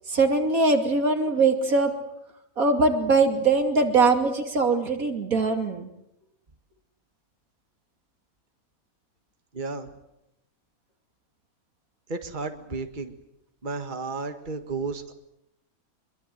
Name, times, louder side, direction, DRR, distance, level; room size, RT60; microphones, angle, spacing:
voice 1, 0.1-1.9 2.6-5.9, right 3 dB, 75° right, 4 dB, 3.1 m, -22 dB
voice 2, 9.5-9.9 12.1-13.1 13.6-15.1, right 4 dB, 35° right, 6 dB, 1.9 m, -33 dB
25.5 x 23.5 x 7.8 m, 0.86 s
omnidirectional pair, 1.5 m